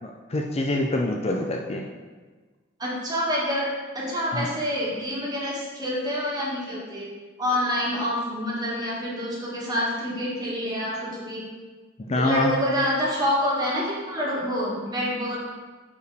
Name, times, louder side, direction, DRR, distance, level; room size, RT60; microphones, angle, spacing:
voice 1, 0.0-1.8 4.3-4.5 10.9-11.1 12.0-12.5, left 2 dB, 30° left, 1 dB, 0.5 m, -26 dB
voice 2, 2.8-3.7 3.9-7.1 7.4-11.5 12.1-15.4, equal, 20° right, -5 dB, 1.9 m, -27 dB
5.4 x 5.0 x 6.2 m, 1.4 s
head